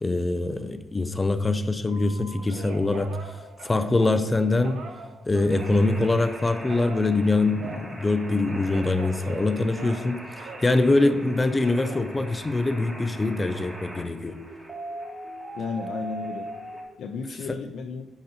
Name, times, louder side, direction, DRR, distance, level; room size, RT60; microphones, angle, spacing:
voice 1, 0.0-3.3 3.6-4.8 5.3-10.2 10.6-14.3, left 2 dB, 15° left, 0.3 m, -23 dB
Telephone, 1.9-6.2 6.7-10.1 10.4-12.9 13.4-13.9, right 4 dB, 85° right, 0.8 m, -43 dB
sound 1, 5.5-16.8, right 1 dB, 20° right, 1.5 m, -40 dB
voice 2, 15.5-16.5 17.0-18.1, left 5 dB, 80° left, 0.5 m, -33 dB
9.4 x 4.0 x 2.8 m
wide cardioid pair, 160°, 0 cm